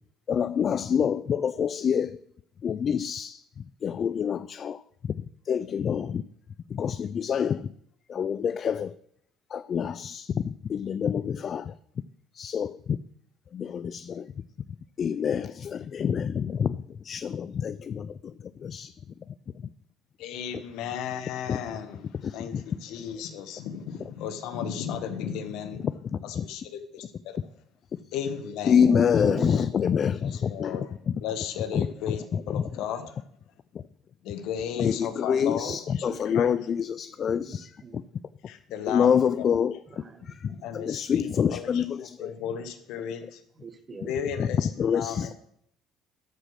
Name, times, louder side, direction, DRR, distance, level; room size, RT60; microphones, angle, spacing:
voice 1, 0.3-2.2 2.6-3.4 3.8-4.8 5.5-6.2 6.7-7.7 8.1-8.9 9.5-11.7 12.4-13.0 13.5-14.2 15.0-16.8 17.0-18.1 18.6-18.9 21.5-21.6 22.2-22.6 25.8-26.4 28.7-30.9 31.7-31.9 32.3-32.6 34.8-37.7 38.9-39.8 40.7-42.3 44.8-45.3, left 7 dB, 40° left, 15 dB, 0.3 m, -26 dB
voice 2, 20.2-22.0 22.3-25.9 26.2-27.4 28.1-28.8 30.2-30.9 31.2-33.2 34.2-36.5 38.5-39.5 40.5-43.4 44.1-45.3, left 8 dB, 75° left, 9 dB, 1.4 m, -35 dB
voice 3, 28.9-29.7 35.7-35.8 36.1-36.4 37.3-38.0 39.9-40.6 43.6-44.1 45.1-45.2, right 4 dB, 30° right, 10 dB, 1.2 m, -40 dB
13.0 x 5.0 x 6.4 m, 0.69 s
cardioid pair, 125°, 0 cm